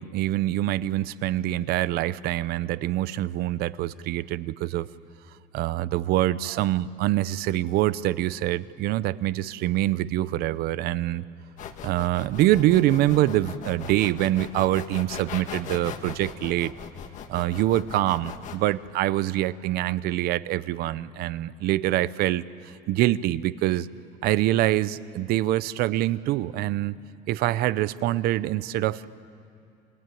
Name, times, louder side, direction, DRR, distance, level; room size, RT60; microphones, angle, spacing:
voice 1, 0.0-4.9 5.5-11.2 11.8-16.7 17.3-23.9 24.2-27.0 27.3-29.1, right 14 dB, 55° right, 17 dB, 0.6 m, -25 dB
sound 1, 11.6-18.6, left 8 dB, 40° left, 1.4 m, -39 dB
29.0 x 20.0 x 9.2 m, 2.5 s
cardioid pair, 160°, 19 cm